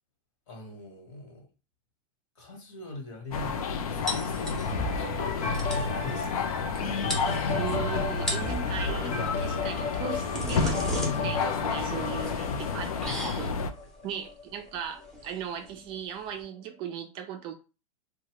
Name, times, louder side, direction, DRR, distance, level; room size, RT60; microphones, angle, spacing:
voice 1, 0.5-1.5 2.3-6.6 12.2-13.2, left 1 dB, 60° left, 1.3 m, -42 dB
sound 1, 3.3-13.7, left 6 dB, 90° left, 0.5 m, -31 dB
sound 2, 4.1-4.9 5.3-5.4 5.5-5.9 6.8-6.9 7.1-7.8 8.1-8.6 9.8-16.4, right 1 dB, ahead, 0.7 m, -37 dB
sound 3, 4.6-14.4 15.1-15.2, left 3 dB, 45° left, 0.7 m, -33 dB
voice 2, 7.5-12.9 13.4-13.5 14.0-17.5, right 8 dB, 30° right, 0.4 m, -38 dB
2.7 x 2.2 x 3.0 m
supercardioid pair, 145°, 18 cm